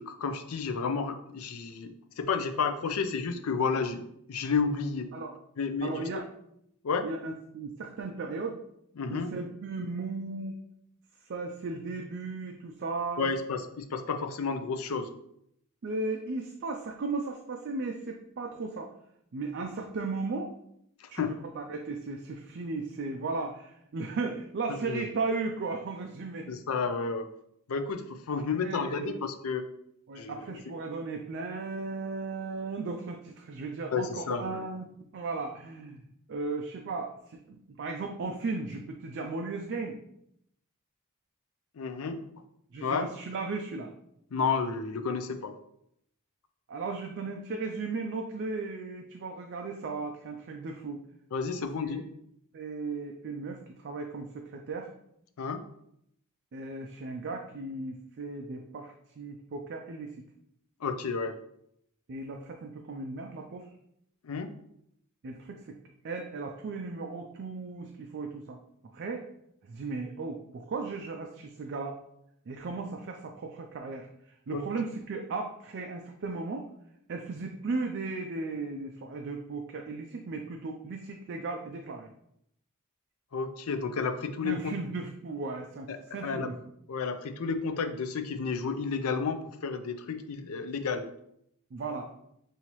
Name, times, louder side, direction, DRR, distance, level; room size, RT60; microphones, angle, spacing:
voice 1, 0.0-5.1 5.6-6.1 6.8-7.1 9.0-9.3 13.2-15.1 21.0-21.3 24.7-25.0 26.5-27.3 27.7-29.7 30.2-30.6 33.9-34.7 41.8-42.2 42.8-43.1 44.3-45.5 51.3-52.0 55.4-55.6 60.8-61.4 64.2-64.5 74.5-74.6 83.3-84.7 85.9-86.0 86.2-86.5 86.9-91.1, left 5 dB, 70° left, 9 dB, 0.5 m, -31 dB
voice 2, 5.8-6.3 7.0-8.6 9.1-10.5 11.3-13.3 15.8-18.9 19.3-20.5 21.1-26.5 28.3-29.2 30.1-34.9 35.1-36.0 36.3-40.0 42.7-43.9 46.7-51.0 51.8-52.0 52.5-54.9 56.5-60.2 62.1-63.7 65.2-65.8 66.0-68.6 68.9-69.3 69.6-72.0 72.5-74.1 74.5-76.7 77.1-82.1 84.4-86.6 91.7-92.1, right 3 dB, 50° right, 3 dB, 0.4 m, -36 dB
5.5 x 2.7 x 3.0 m, 0.74 s
head